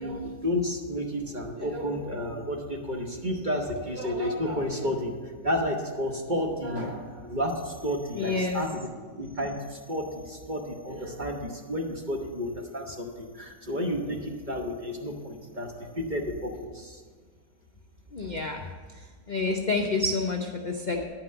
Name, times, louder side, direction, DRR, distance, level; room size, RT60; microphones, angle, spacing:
voice 1, 0.0-5.2 5.4-8.9 9.2-17.0 20.9-21.0, equal, 35° right, 1 dB, 1.0 m, -31 dB
voice 2, 8.1-8.6 18.1-18.7 19.3-21.0, left 3 dB, 60° left, 2 dB, 0.4 m, -28 dB
10.5 x 5.9 x 7.8 m, 1.5 s
omnidirectional pair, 1.9 m